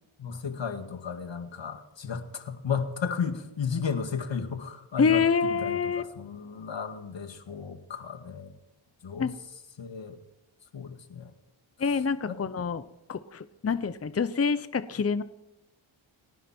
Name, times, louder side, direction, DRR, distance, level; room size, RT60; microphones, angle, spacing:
voice 1, 0.2-5.2 5.5-8.5 9.0-9.3 9.8-10.2 10.7-11.3 12.3-12.4, left 6 dB, 60° left, 6 dB, 2.1 m, -34 dB
voice 2, 5.0-6.0 9.2-9.3 11.8-15.2, left 5 dB, 30° left, 13 dB, 0.8 m, -26 dB
29.5 x 11.0 x 4.5 m, 0.95 s
cardioid pair, 70°, 49 cm